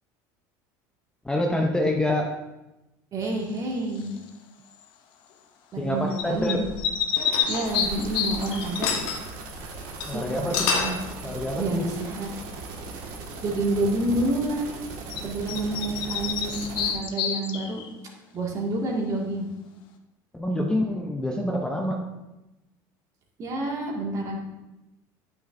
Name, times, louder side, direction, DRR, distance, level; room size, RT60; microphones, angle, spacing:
voice 1, 1.2-2.4 5.8-6.7 10.1-10.7 11.2-11.9 20.3-22.1, left 1 dB, 10° left, 1 dB, 0.7 m, -26 dB
voice 2, 3.1-4.1 5.7-6.6 7.5-8.9 10.1-11.0 11.6-12.3 13.4-14.7 15.2-17.8 18.3-19.5 23.4-24.4, right 2 dB, 40° right, -1 dB, 2.1 m, -28 dB
sound 1, 4.0-4.3 6.1-8.7 15.1-15.2 15.5-17.9, left 8 dB, 60° left, 0.9 m, -29 dB
sound 2, 6.6-8.3 8.6-9.2 9.6-9.7 10.0-10.1 10.4-11.0, left 5 dB, 90° left, 1.3 m, -28 dB
sound 3, 7.6-16.9, right 3 dB, 70° right, 1.8 m, -39 dB
9.4 x 8.5 x 2.6 m, 0.99 s
supercardioid pair, 115°, 9 cm